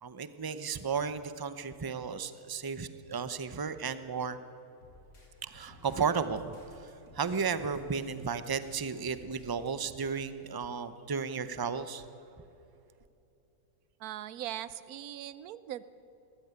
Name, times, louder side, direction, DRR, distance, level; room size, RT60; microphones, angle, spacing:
voice 1, 0.0-4.4 5.4-12.1, right 5 dB, 25° right, 12 dB, 0.5 m, -34 dB
sound 1, 4.8-10.2, left 1 dB, 90° left, 4.9 m, -56 dB
voice 2, 14.0-15.8, right 12 dB, 70° right, 16 dB, 1.2 m, -40 dB
20.5 x 14.5 x 9.6 m, 2.8 s
omnidirectional pair, 1.7 m